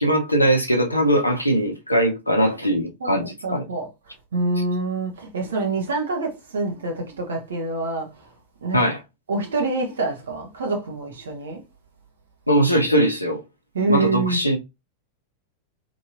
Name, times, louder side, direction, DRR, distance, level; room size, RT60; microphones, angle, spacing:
voice 1, 0.0-3.7 8.7-9.0 12.5-13.4 13.9-14.6, right 1 dB, 85° left, 0.7 m, -20 dB
voice 2, 3.0-3.9 4.3-8.1 8.6-8.8 9.3-11.6 13.7-14.4, right 3 dB, 65° right, 1.0 m, -26 dB
3.0 x 2.8 x 2.7 m
figure-of-eight pair, 90°, 0 cm